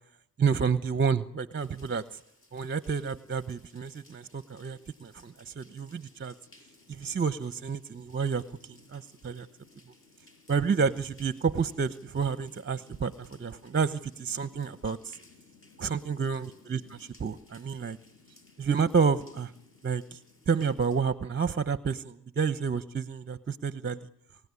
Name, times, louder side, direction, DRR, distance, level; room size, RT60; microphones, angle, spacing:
voice 1, 0.4-2.2 2.5-6.3 6.9-8.4 8.9-9.5 10.5-15.2 15.8-18.0 18.6-19.5 19.8-20.2 20.5-24.0, right 5 dB, 30° right, 13 dB, 1.0 m, -29 dB
sound 1, 1.6-21.0, left 3 dB, 30° left, 6.6 m, -59 dB
27.5 x 16.5 x 9.8 m, 0.77 s
cardioid pair, 90°, 41 cm